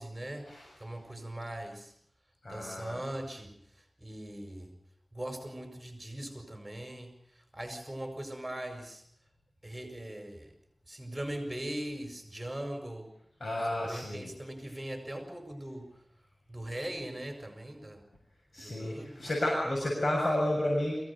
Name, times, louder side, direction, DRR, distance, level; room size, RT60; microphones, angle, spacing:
voice 1, 0.0-0.5 0.8-1.9 2.5-3.6 4.0-4.7 5.1-7.2 7.5-9.0 9.6-10.5 10.9-13.1 13.6-16.0 16.5-18.0 18.6-19.2, right 1 dB, 20° right, 5 dB, 5.1 m, -40 dB
voice 2, 2.4-3.0 13.4-14.3 18.5-21.0, left 1 dB, 65° left, -2 dB, 7.1 m, -31 dB
23.0 x 16.5 x 8.6 m, 0.70 s
wide cardioid pair, 55°, 0 cm